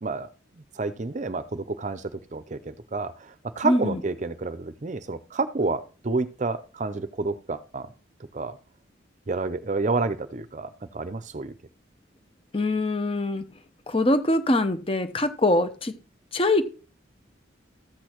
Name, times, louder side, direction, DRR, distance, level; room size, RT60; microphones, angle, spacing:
voice 1, 0.0-7.9 8.3-8.6 9.3-11.5, right 3 dB, 40° right, 0.6 m, -30 dB
voice 2, 3.6-4.0 12.5-13.5 13.9-16.0 16.3-16.6, left 2 dB, 30° left, 0.8 m, -23 dB
13.5 x 8.3 x 3.0 m
head